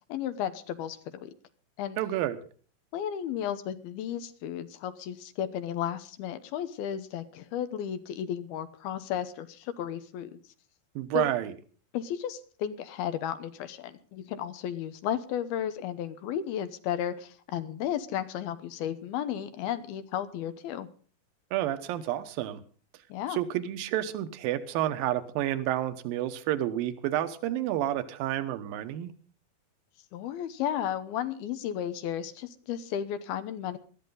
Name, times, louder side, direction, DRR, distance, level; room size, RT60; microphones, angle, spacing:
voice 1, 0.1-1.3 1.8-2.0 2.9-10.4 11.1-11.3 11.9-20.9 23.1-23.4 30.1-33.8, left 10 dB, 80° left, 11 dB, 2.8 m, -34 dB
voice 2, 2.0-2.4 11.0-11.5 21.5-22.6 23.3-29.1, right 13 dB, 75° right, 11 dB, 2.7 m, -30 dB
19.0 x 13.5 x 3.9 m, 0.41 s
omnidirectional pair, 4.4 m